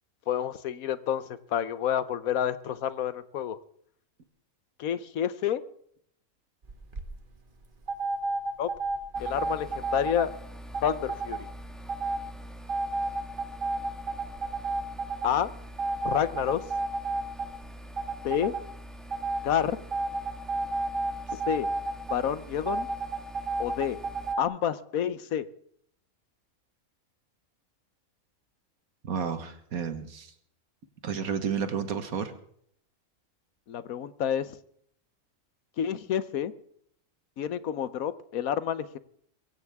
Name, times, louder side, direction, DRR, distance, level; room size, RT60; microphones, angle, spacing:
voice 1, 0.3-1.2 1.5-3.6 4.8-5.6 8.6-8.7 9.2-10.3 10.8-11.5 15.2-15.5 16.0-16.6 18.2-18.5 19.4-19.8 21.3-21.7 22.1-22.9 23.6-24.0 24.4-25.4 33.7-34.5 35.8-36.5 37.4-39.0, left 9 dB, 80° left, 14 dB, 1.3 m, -29 dB
sound 1, 6.6-7.0 7.9-10.3 10.7-11.4 11.9-12.2 12.7-15.3 15.8-17.7 18.0-18.6 19.1-19.4 19.9-22.2 22.7-24.4, right 3 dB, 40° right, 1.6 m, -31 dB
sound 2, 9.1-24.3, equal, ahead, 1.5 m, -45 dB
voice 2, 29.0-30.3 31.0-32.3, right 6 dB, 80° right, 9 dB, 1.9 m, -31 dB
22.0 x 16.0 x 3.6 m, 0.65 s
omnidirectional pair, 1.5 m